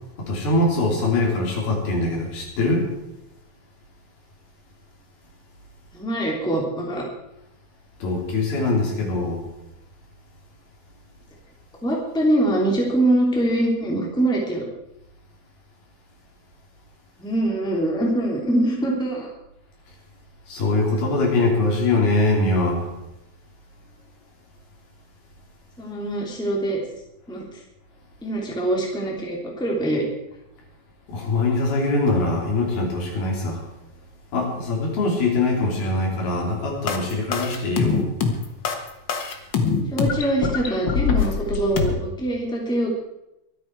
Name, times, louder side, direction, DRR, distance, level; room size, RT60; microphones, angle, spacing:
voice 1, 0.2-2.9 8.0-9.4 20.5-22.9 31.1-33.6 34.3-38.1, left 2 dB, 75° left, -1 dB, 5.3 m, -22 dB
voice 2, 5.9-7.0 11.8-14.6 17.2-19.3 25.8-26.8 27.3-27.6 28.2-30.0 39.9-43.0, right 1 dB, ahead, -1 dB, 2.4 m, -23 dB
sound 1, 36.9-41.9, left 6 dB, 55° left, 1.2 m, -23 dB
23.0 x 9.4 x 4.7 m, 0.88 s
omnidirectional pair, 4.4 m